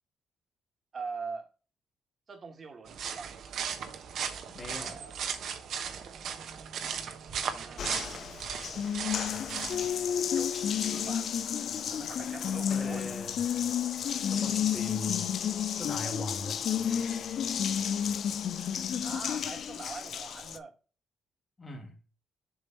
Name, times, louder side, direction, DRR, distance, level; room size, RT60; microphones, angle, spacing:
voice 1, 0.9-1.5 2.3-3.3 5.8-6.5 7.5-8.4 10.3-11.3 11.9-13.2 14.1-14.2 19.0-20.7, right 4 dB, 45° right, 1.5 m, -43 dB
sound 1, 2.9-9.9, right 7 dB, 70° right, 1.0 m, -37 dB
voice 2, 4.5-5.0 12.7-13.4 14.1-15.3 15.7-16.6 21.6-22.0, left 2 dB, 25° left, 1.7 m, -40 dB
Water tap faucet, 7.8-20.6, left 8 dB, 60° left, 0.5 m, -31 dB
7.1 x 3.4 x 4.4 m
cardioid pair, 90°, 0 cm